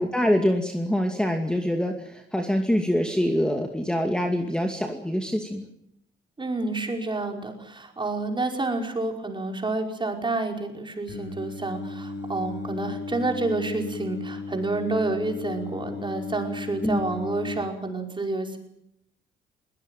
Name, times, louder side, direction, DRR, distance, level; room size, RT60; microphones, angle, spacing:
voice 1, 0.0-5.6 16.8-17.0, equal, 5° left, 4 dB, 2.4 m, -25 dB
voice 2, 6.4-18.6, right 3 dB, 25° right, 3 dB, 5.1 m, -29 dB
Singing, 11.1-17.6, left 4 dB, 65° left, 8.0 m, -35 dB
21.5 x 18.5 x 9.2 m, 0.79 s
cardioid pair, 90°, 20 cm